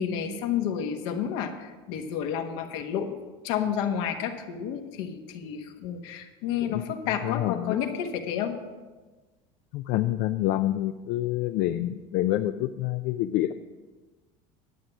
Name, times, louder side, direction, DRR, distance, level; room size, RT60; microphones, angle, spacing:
voice 1, 0.0-3.2 3.4-8.6, left 8 dB, 75° left, 4 dB, 1.4 m, -30 dB
voice 2, 7.2-7.8 9.7-13.5, left 14 dB, 60° left, 8 dB, 0.5 m, -27 dB
11.5 x 7.8 x 6.0 m, 1.3 s
supercardioid pair, 115°, 16 cm